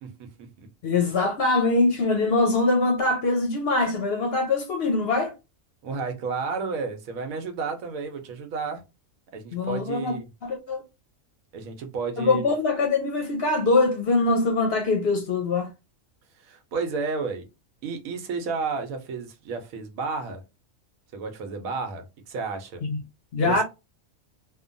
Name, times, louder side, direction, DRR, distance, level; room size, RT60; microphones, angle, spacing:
voice 1, 0.0-0.7 5.8-8.8 9.3-10.3 11.5-12.5 16.4-17.4 17.8-20.4 21.1-22.8 23.4-23.6, right 4 dB, 90° right, 1.1 m, -32 dB
voice 2, 0.8-5.3 9.5-10.2 10.4-10.8 12.2-15.7 22.9-23.0 23.3-23.6, left 3 dB, 60° left, 0.7 m, -23 dB
2.8 x 2.2 x 2.5 m
omnidirectional pair, 1.4 m